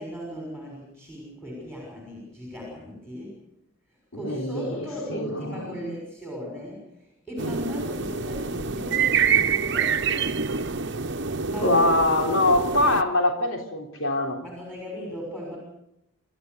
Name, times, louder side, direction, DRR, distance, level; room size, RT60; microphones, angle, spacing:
voice 1, 0.0-3.4 4.1-10.4 11.4-11.9 14.4-15.6, left 1 dB, 5° left, -2 dB, 6.2 m, -37 dB
voice 2, 4.1-5.9 11.6-14.4, left 2 dB, 75° left, 2 dB, 3.6 m, -24 dB
sound 1, 7.4-13.0, right 6 dB, 55° right, 1.0 m, -26 dB
30.0 x 14.0 x 8.0 m, 0.83 s
head